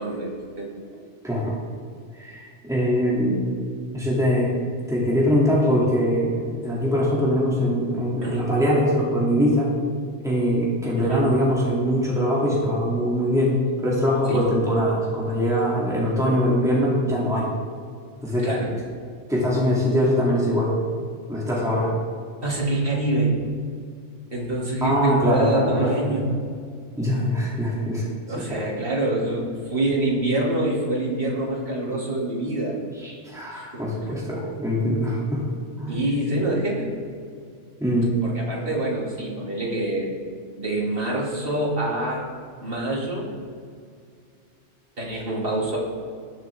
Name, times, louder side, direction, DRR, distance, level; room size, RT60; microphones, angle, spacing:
voice 1, 0.0-1.1 8.2-8.5 11.0-11.3 14.3-14.6 18.4-18.7 22.4-23.3 24.3-26.3 28.3-32.8 33.5-34.2 35.9-36.9 38.2-40.1 40.6-42.3 42.6-43.3 45.0-45.8, right 1 dB, 50° right, -4 dB, 2.8 m, -26 dB
voice 2, 2.2-3.4 3.9-4.5 4.9-9.7 10.2-17.5 18.2-18.5 19.3-20.7 21.3-21.9 24.8-26.1 27.0-28.1 28.5-28.6 33.0-35.5 35.8-36.1 37.8-38.2, equal, 5° right, -6 dB, 2.6 m, -22 dB
19.5 x 7.2 x 3.6 m, 2.2 s
omnidirectional pair, 1.2 m